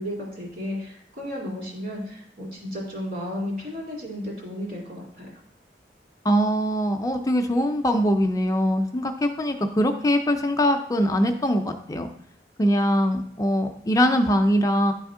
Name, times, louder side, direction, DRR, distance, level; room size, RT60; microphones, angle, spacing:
voice 1, 0.0-5.3, left 1 dB, 55° right, -2 dB, 2.3 m, -33 dB
voice 2, 6.2-12.1 12.6-14.9, equal, 20° left, 5 dB, 0.4 m, -22 dB
9.4 x 3.5 x 3.6 m, 0.71 s
head